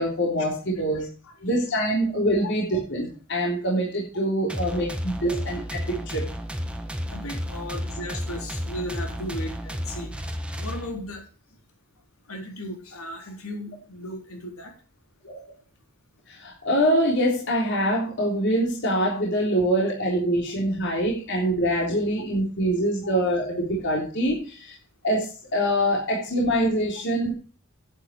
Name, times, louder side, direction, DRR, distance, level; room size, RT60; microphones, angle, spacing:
voice 1, 0.0-1.1 1.4-6.2 15.2-15.4 16.3-24.7 25.0-27.3, equal, 55° left, -3 dB, 3.6 m, -24 dB
voice 2, 0.9-1.5 2.4-2.8 7.1-11.2 12.3-14.7 23.0-23.1, left 1 dB, 80° left, 3 dB, 4.0 m, -36 dB
sound 1, 4.5-11.2, equal, 5° right, 1.3 m, -32 dB
11.0 x 9.1 x 4.6 m, 0.37 s
head